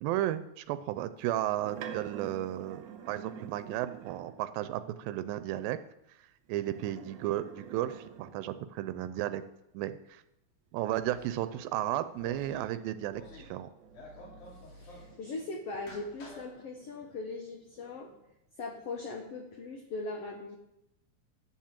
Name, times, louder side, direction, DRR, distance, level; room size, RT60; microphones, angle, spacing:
voice 1, 0.0-5.8 6.5-9.4 9.7-10.2 10.7-13.7, right 13 dB, 90° right, 12 dB, 2.3 m, -34 dB
sound 1, 1.2-4.5 6.5-8.8 10.8-16.0 16.5-18.3, right 7 dB, 70° right, 1.6 m, -49 dB
sound 2, 10.9-11.4 12.1-12.6 13.1-13.6 13.8-15.1 15.7-16.5, left 1 dB, 85° left, 4.5 m, -50 dB
voice 2, 14.5-18.1 18.6-20.6, left 3 dB, 60° left, 2 dB, 1.7 m, -40 dB
11.5 x 7.3 x 7.4 m, 0.87 s
omnidirectional pair, 4.0 m